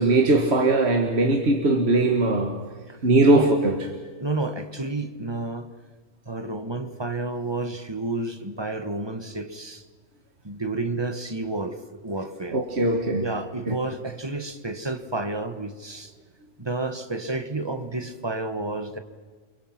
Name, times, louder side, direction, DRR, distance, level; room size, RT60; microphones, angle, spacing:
voice 1, 0.0-2.6 3.0-3.8 12.5-13.3 13.7-13.8, right 2 dB, 45° right, 3 dB, 1.8 m, -20 dB
voice 2, 4.2-5.7 6.3-9.8 10.4-12.6 13.2-16.1 16.6-19.0, right 2 dB, 20° right, 8 dB, 1.4 m, -30 dB
29.5 x 23.0 x 5.9 m, 1.5 s
omnidirectional pair, 1.5 m